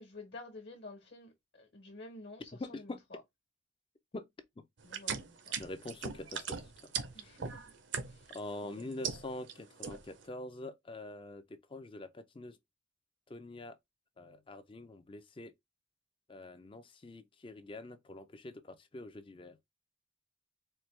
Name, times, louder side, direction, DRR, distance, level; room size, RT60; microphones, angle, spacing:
voice 1, 0.0-3.2 4.8-5.5 7.1-7.6 8.1-8.4 8.8-8.9, left 2 dB, 55° left, 1.2 m, -51 dB
voice 2, 2.6-3.0 4.1-4.3 5.6-6.9 8.3-12.6 13.3-13.8 14.2-15.5 16.3-19.6, left 2 dB, 25° left, 0.4 m, -45 dB
sound 1, 4.8-8.4 8.8-9.5 9.8-10.2, right 6 dB, 65° right, 0.6 m, -38 dB
4.4 x 2.3 x 3.2 m
head